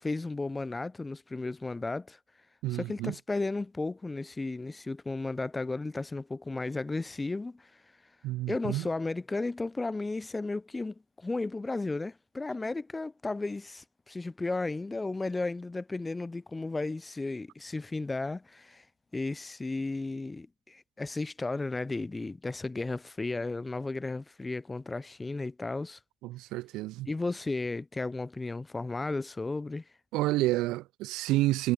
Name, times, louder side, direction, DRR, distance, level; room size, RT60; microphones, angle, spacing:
voice 1, 0.0-2.2 2.7-7.7 8.5-18.8 19.1-26.0 27.1-29.8, left 3 dB, 10° left, 0.6 m, -34 dB
voice 2, 2.6-3.1 8.2-8.8 26.2-27.1 30.1-31.7, right 18 dB, 50° right, 0.4 m, -29 dB
hypercardioid pair, 85°, 0 cm